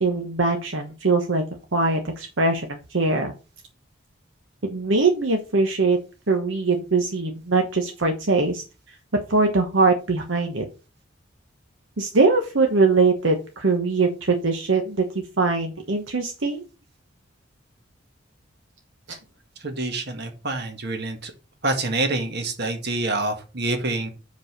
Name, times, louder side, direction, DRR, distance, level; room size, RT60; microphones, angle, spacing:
voice 1, 0.0-1.4 1.7-3.3 4.6-6.0 6.3-8.6 9.3-10.7 12.0-15.0 15.4-16.6 19.1-19.2, right 3 dB, 80° right, 4 dB, 1.1 m, -22 dB
voice 2, 19.6-21.3 21.6-24.1, right 2 dB, 60° right, 6 dB, 1.6 m, -26 dB
6.3 x 5.3 x 5.0 m, 0.31 s
head